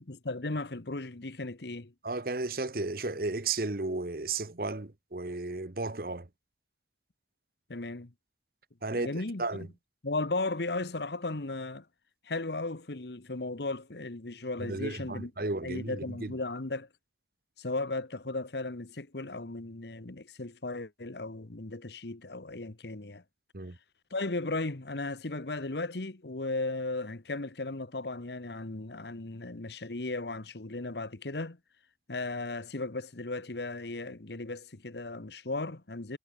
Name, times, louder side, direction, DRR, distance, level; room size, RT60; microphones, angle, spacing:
voice 1, 0.0-1.9 7.7-8.1 8.9-9.7 10.0-11.8 12.3-15.3 15.6-16.9 17.6-23.2 24.1-31.6 32.1-36.2, left 2 dB, 70° left, 1.3 m, -36 dB
voice 2, 2.0-6.3 8.8-9.1 9.4-9.7 14.6-16.3 23.5-23.8, right 3 dB, 55° right, 1.2 m, -34 dB
head